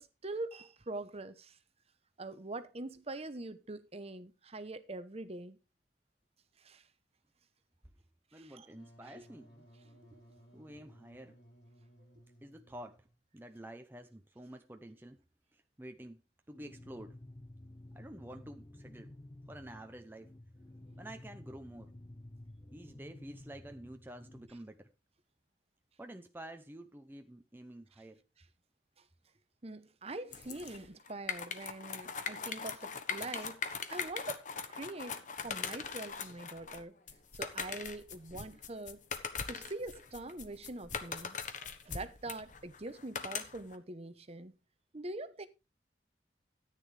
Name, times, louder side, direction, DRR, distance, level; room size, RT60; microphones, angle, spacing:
voice 1, 0.0-1.6 2.2-5.6 6.6-6.8 8.4-8.7 9.1-9.2 9.9-10.2 20.9-21.0 29.6-33.6 33.9-37.0 37.3-39.0 39.5-41.4 41.6-44.5 44.9-45.5, right 2 dB, 35° right, 1.0 m, -44 dB
voice 2, 8.3-9.7 10.5-11.4 12.4-13.1 13.3-15.2 15.5-16.2 16.5-17.2 17.9-19.2 19.5-20.4 21.0-21.9 22.7-24.9 26.0-28.2, right 1 dB, 10° right, 0.7 m, -49 dB
Wind instrument woodwind instrument, 8.7-13.2, equal, 80° left, 5.3 m, -60 dB
sound 1, 16.5-24.5, left 1 dB, 20° left, 0.6 m, -52 dB
sound 2, 30.3-43.8, left 6 dB, 45° left, 1.2 m, -41 dB
13.5 x 9.3 x 3.4 m
head